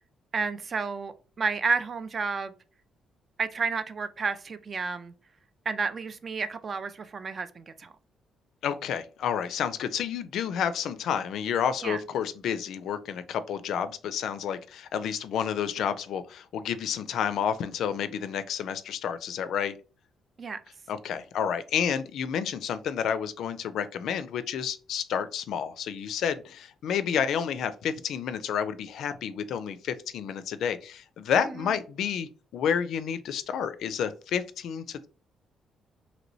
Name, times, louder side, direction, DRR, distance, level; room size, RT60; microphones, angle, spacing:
voice 1, 0.3-2.5 3.4-5.1 5.7-7.9 11.8-12.0 20.4-20.6 31.4-31.6, right 4 dB, 40° right, 0.3 m, -31 dB
voice 2, 8.6-19.8 20.9-35.1, left 8 dB, 75° left, 0.3 m, -30 dB
3.0 x 2.9 x 2.6 m
cardioid pair, 90°, 0 cm